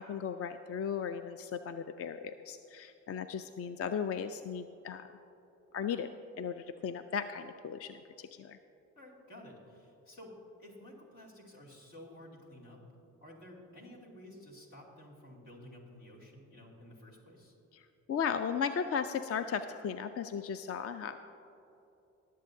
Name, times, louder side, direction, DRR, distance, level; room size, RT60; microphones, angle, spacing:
voice 1, 0.0-5.1 5.7-6.1 6.4-8.6 17.7-21.3, left 7 dB, 40° left, 10 dB, 0.5 m, -36 dB
voice 2, 9.0-12.8 13.2-17.5, left 1 dB, 75° left, -5 dB, 2.7 m, -52 dB
21.0 x 7.6 x 2.7 m, 3.0 s
hypercardioid pair, 45°, 35 cm